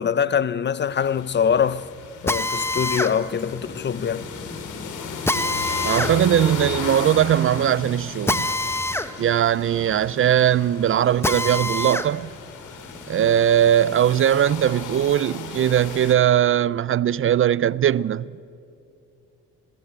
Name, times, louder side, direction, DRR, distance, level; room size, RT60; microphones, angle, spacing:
voice 1, 0.0-1.9 2.2-4.3, left 7 dB, 35° left, 0.6 m, -23 dB
sound 1, 0.9-16.2, left 6 dB, 80° left, 3.0 m, -36 dB
Drill, 2.3-12.1 12.5-14.2, left 2 dB, 10° left, 1.1 m, -28 dB
voice 2, 5.8-8.5 9.2-12.3 13.1-18.4, right 10 dB, 45° right, 0.4 m, -20 dB
22.0 x 17.5 x 8.0 m
cardioid pair, 90°, 30 cm